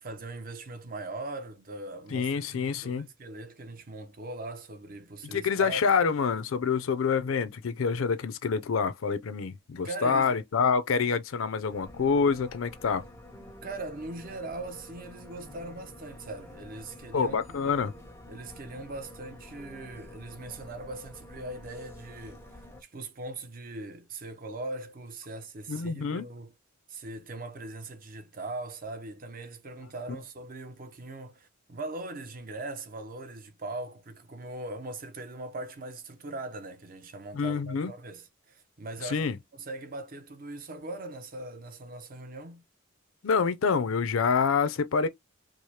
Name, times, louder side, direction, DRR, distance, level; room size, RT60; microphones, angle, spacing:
voice 1, 0.0-5.8 9.8-10.4 13.6-17.5 18.3-26.5 26.9-42.6, right 2 dB, 45° right, 0.6 m, -40 dB
voice 2, 2.1-3.1 5.3-13.0 17.1-17.9 25.7-26.3 37.3-37.9 39.0-39.4 43.2-45.1, left 5 dB, 80° left, 0.5 m, -27 dB
sound 1, 11.7-22.8, left 1 dB, 15° left, 0.5 m, -48 dB
4.7 x 2.0 x 2.8 m
head